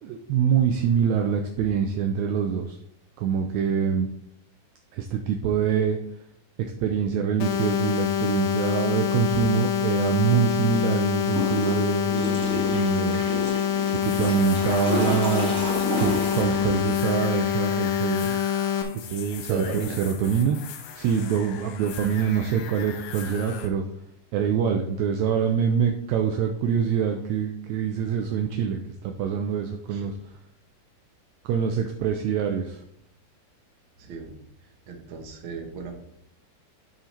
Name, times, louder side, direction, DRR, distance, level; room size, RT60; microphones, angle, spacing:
voice 1, 0.0-2.8 3.2-4.1 4.9-6.0 6.6-13.2 14.0-15.5 16.0-18.4 18.9-20.6 20.9-23.8 24.3-30.1 31.4-32.8, right 7 dB, 85° right, 4 dB, 1.6 m, -25 dB
sound 1, 7.4-18.8, left 9 dB, 70° left, 2.1 m, -25 dB
Water / Toilet flush, 11.2-17.4, equal, ahead, 1.4 m, -31 dB
sound 2, 13.8-23.7, left 8 dB, 90° left, 2.5 m, -41 dB
voice 2, 19.5-20.0 29.9-30.1 34.0-34.3 34.9-36.1, right 4 dB, 60° right, 2 dB, 1.3 m, -35 dB
9.7 x 3.9 x 4.4 m, 0.72 s
omnidirectional pair, 3.8 m